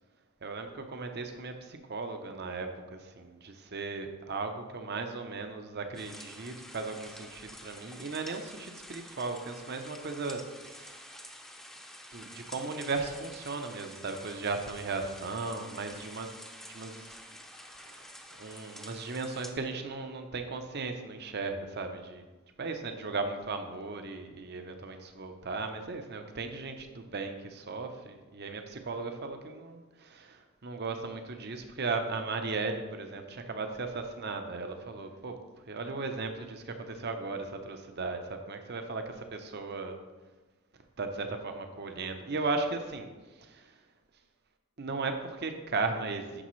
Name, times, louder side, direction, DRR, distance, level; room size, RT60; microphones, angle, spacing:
voice 1, 0.4-11.0 12.1-16.3 16.7-17.2 17.8-18.1 18.4-22.2 22.6-35.4 35.7-39.9 41.0-43.1 43.4-43.7 44.8-46.4, right 3 dB, 50° right, 6 dB, 0.8 m, -36 dB
sound 1, 5.9-19.5, equal, ahead, 0.7 m, -49 dB
9.9 x 6.4 x 3.2 m, 1.3 s
head